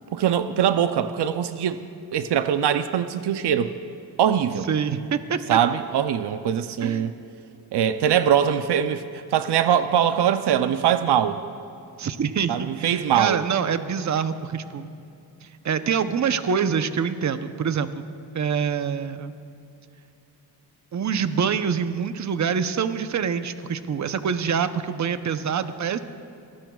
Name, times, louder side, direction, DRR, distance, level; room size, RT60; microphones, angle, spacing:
voice 1, 0.1-1.8 2.1-3.7 4.2-4.7 5.5-7.1 7.7-11.4 12.5-13.4, right 9 dB, 85° right, 10 dB, 0.6 m, -22 dB
voice 2, 4.7-5.6 6.8-7.1 12.0-14.9 15.4-18.0 18.3-19.3 20.9-26.0, right 7 dB, 45° right, 10 dB, 0.7 m, -25 dB
23.5 x 19.0 x 2.3 m, 2.7 s
cardioid pair, 90°, 39 cm